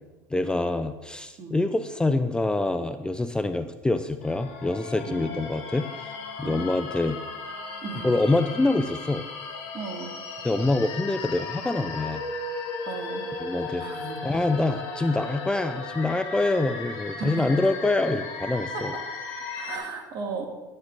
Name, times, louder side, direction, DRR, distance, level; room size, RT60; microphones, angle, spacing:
voice 1, 0.3-6.1 6.4-7.2 8.0-9.3 10.4-12.2 13.4-13.8 14.2-18.9, left 2 dB, 10° left, 9 dB, 0.5 m, -25 dB
sound 1, 4.2-19.8, left 3 dB, 60° left, 2.9 m, -36 dB
voice 2, 7.8-8.1 9.7-10.1 12.8-13.3 13.8-14.2 17.2-17.6 18.7-18.8 19.5-20.5, right 5 dB, 50° right, 1 dB, 2.2 m, -35 dB
11.5 x 9.6 x 2.6 m, 1.2 s
hypercardioid pair, 80°, 9 cm